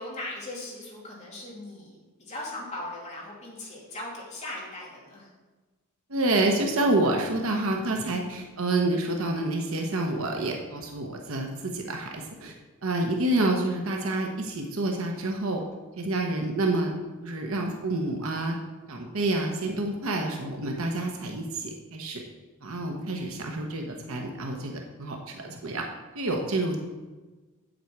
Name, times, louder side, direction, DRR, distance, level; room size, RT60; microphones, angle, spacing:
voice 1, 0.0-5.3, left 1 dB, 35° left, -5 dB, 2.8 m, -39 dB
voice 2, 6.1-12.5 12.8-15.6 16.0-16.9 17.2-18.6 18.9-22.2 22.6-25.9 26.1-26.8, right 2 dB, 75° right, 2 dB, 1.0 m, -28 dB
8.4 x 7.7 x 4.6 m, 1.2 s
head